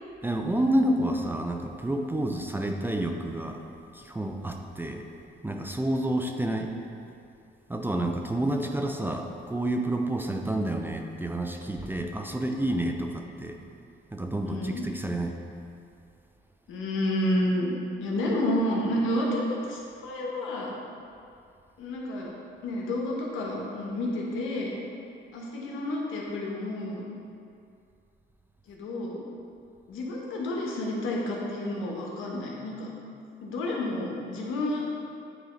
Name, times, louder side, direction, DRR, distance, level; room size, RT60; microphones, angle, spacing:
voice 1, 0.2-3.6 3.9-5.1 5.4-6.7 7.7-13.6 14.1-15.4, right 1 dB, 10° right, 3 dB, 0.4 m, -29 dB
voice 2, 14.5-14.8 16.7-17.7 18.0-20.7 21.8-22.3 22.6-24.8 25.3-27.0 28.7-29.2 29.9-32.9 33.4-34.8, left 1 dB, 85° left, -2 dB, 1.1 m, -30 dB
9.0 x 3.1 x 3.8 m, 2.5 s
cardioid pair, 90°, 20 cm